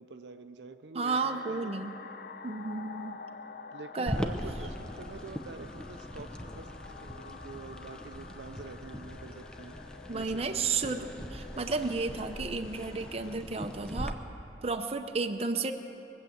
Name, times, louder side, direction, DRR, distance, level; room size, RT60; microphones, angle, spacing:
voice 1, 0.0-1.7 3.7-9.8 10.1-11.0 11.2-11.4, right 3 dB, 80° right, 9 dB, 0.6 m, -46 dB
voice 2, 0.9-1.9 2.4-3.2 3.9-4.3 10.1-11.1 11.3-14.2 14.6-15.7, right 4 dB, 35° right, 6 dB, 0.7 m, -32 dB
sound 1, 1.1-13.4, left 5 dB, 55° left, 0.5 m, -48 dB
sound 2, 4.1-14.1, equal, 5° left, 0.7 m, -40 dB
22.0 x 7.4 x 8.1 m, 2.9 s
head